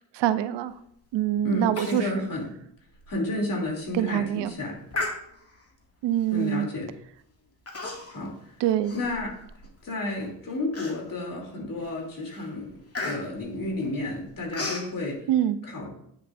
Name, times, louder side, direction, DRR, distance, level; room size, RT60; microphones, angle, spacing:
voice 1, 0.1-0.7 1.1-2.1 3.9-4.5 6.0-6.7 8.6-8.9 15.3-15.6, right 12 dB, 80° right, 13 dB, 0.6 m, -24 dB
voice 2, 1.4-2.5 3.1-4.7 6.3-6.9 8.1-8.5 8.9-9.3 9.8-12.8 13.0-15.2 15.6-15.9, left 2 dB, 50° left, 0 dB, 3.0 m, -31 dB
Human voice, 1.8-2.1 2.4-2.5 3.0-3.1 3.7-3.9 4.9-5.6 6.4-6.6 7.7-8.3 8.6-9.7 10.2-10.3 10.7-11.3 11.8-12.0 12.3-14.9, left 2 dB, 35° left, 2.2 m, -35 dB
9.1 x 8.7 x 2.6 m, 0.71 s
supercardioid pair, 65°, 42 cm